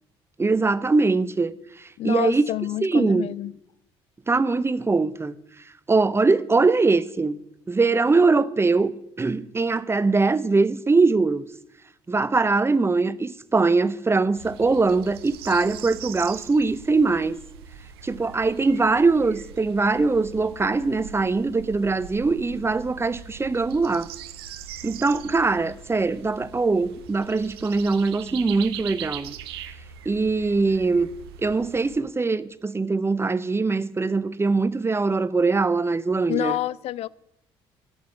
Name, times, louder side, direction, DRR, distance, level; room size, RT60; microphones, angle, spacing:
voice 1, 0.4-2.5 2.8-3.3 4.3-5.3 5.9-7.4 7.7-11.5 12.1-17.4 18.0-24.1 24.8-29.4 30.1-31.1 31.4-36.6, right 3 dB, 20° right, 0.7 m, -22 dB
voice 2, 2.0-3.5 36.3-37.1, left 14 dB, 60° left, 0.4 m, -28 dB
sound 1, 14.3-32.0, right 9 dB, 90° right, 0.6 m, -41 dB
9.4 x 7.9 x 7.8 m
hypercardioid pair, 60°, 13 cm